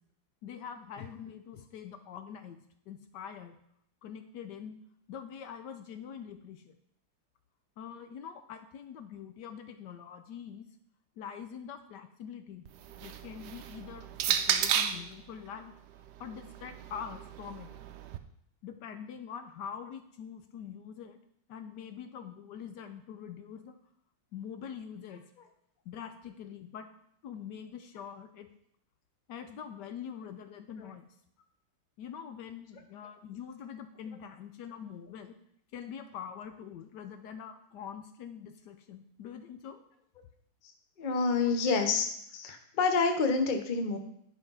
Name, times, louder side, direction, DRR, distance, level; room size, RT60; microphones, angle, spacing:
voice 1, 0.4-3.6 4.0-4.8 5.1-6.8 7.8-10.7 11.2-12.7 13.0-15.7 16.2-17.7 18.6-21.2 21.5-23.8 24.3-25.2 25.8-26.9 27.2-28.5 29.3-31.1 32.0-35.4 35.7-39.8 41.4-41.5, left 8 dB, 70° left, 8 dB, 1.0 m, -44 dB
sound 1, 12.7-15.1 16.1-18.2, right 9 dB, 75° right, 1.0 m, -33 dB
voice 2, 41.0-44.0, left 4 dB, 85° left, 6 dB, 0.4 m, -28 dB
10.0 x 5.1 x 5.5 m, 0.70 s
omnidirectional pair, 2.4 m